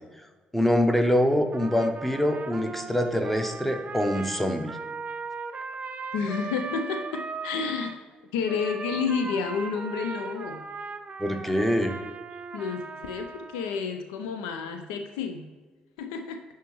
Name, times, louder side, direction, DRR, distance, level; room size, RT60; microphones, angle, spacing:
voice 1, 0.5-4.8 11.2-12.0, equal, 5° left, 6 dB, 0.8 m, -24 dB
Trumpet, 1.5-8.0 8.5-13.8, right 4 dB, 35° right, 0.4 m, -38 dB
voice 2, 6.1-8.0 8.3-10.7 12.5-15.5 16.0-16.4, left 6 dB, 75° left, 6 dB, 0.4 m, -30 dB
10.0 x 3.5 x 3.1 m, 1.4 s
figure-of-eight pair, 45°, 4 cm